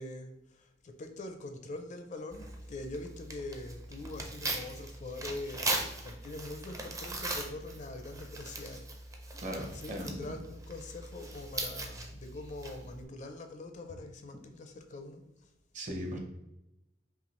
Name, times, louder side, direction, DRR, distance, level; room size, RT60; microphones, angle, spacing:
voice 1, 0.0-5.7 6.0-8.9 9.7-15.2, left 2 dB, 40° left, 6 dB, 0.5 m, -43 dB
Tearing, 2.3-13.0, right 2 dB, 20° right, 0.5 m, -40 dB
voice 2, 9.4-10.4 15.7-16.2, equal, 45° right, 2 dB, 0.8 m, -38 dB
5.6 x 2.4 x 3.0 m, 0.91 s
head